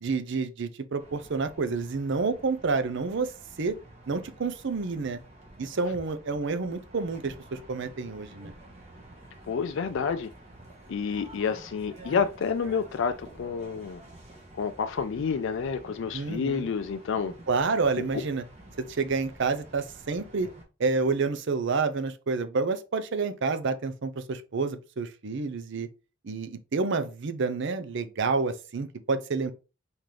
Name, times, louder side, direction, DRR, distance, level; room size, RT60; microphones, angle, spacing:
voice 1, 0.0-3.3 3.6-3.8 4.1-5.2 5.6-8.5 16.1-16.7 17.5-18.4 18.8-20.5 20.8-25.9 26.2-29.5, right 4 dB, 65° right, 0.6 m, -29 dB
sound 1, 1.0-20.6, right 1 dB, 35° right, 1.5 m, -49 dB
voice 2, 9.5-10.3 10.9-14.0 14.6-17.3, left 6 dB, 65° left, 0.4 m, -29 dB
4.3 x 3.8 x 3.3 m
head